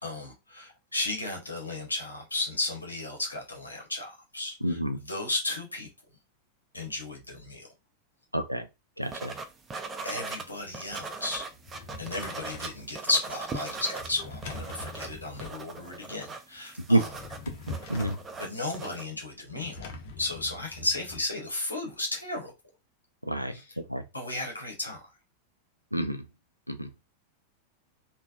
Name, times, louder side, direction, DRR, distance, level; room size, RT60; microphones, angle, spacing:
voice 1, 0.0-5.9 6.7-7.7 9.3-9.4 10.0-11.5 12.0-17.1 18.4-22.5 23.5-23.8 24.1-25.0, left 2 dB, 80° left, 0.9 m, -34 dB
voice 2, 4.6-5.0 8.3-8.7 9.0-9.3 16.9-17.0 17.9-18.2 23.2-23.6 23.9-24.0 25.9-26.2 26.7-26.9, right 1 dB, 90° right, 0.4 m, -27 dB
sound 1, 9.1-10.4 10.7-14.1 14.4-19.0, right 4 dB, 20° right, 0.5 m, -39 dB
Drawer open or close, 11.5-12.8 14.0-15.6 17.0-18.3 19.6-21.3, left 3 dB, 50° left, 0.6 m, -43 dB
3.3 x 2.2 x 2.4 m
figure-of-eight pair, 90°, 0 cm